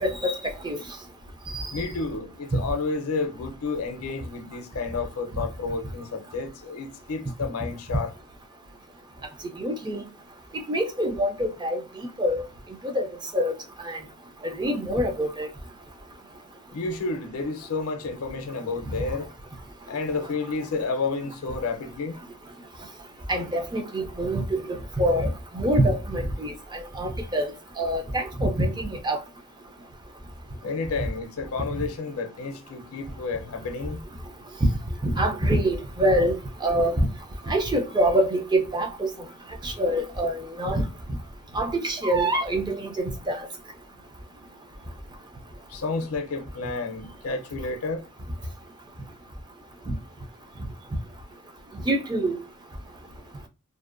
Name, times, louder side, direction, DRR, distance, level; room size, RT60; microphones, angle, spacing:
voice 1, 0.0-0.8 1.5-1.7 2.5-2.6 9.6-10.0 10.7-12.4 12.8-13.1 13.3-13.5 13.8-14.0 14.4-15.5 23.3-27.5 27.8-29.2 34.6-34.7 35.0-37.1 37.5-39.1 39.6-40.8 41.5-43.5 49.9-50.0 51.8-52.4, right 1 dB, 20° right, 0.4 m, -25 dB
voice 2, 1.7-8.1 16.7-19.3 19.9-22.2 30.6-34.0 45.7-48.0, left 4 dB, 70° left, 0.5 m, -31 dB
2.5 x 2.1 x 2.4 m
head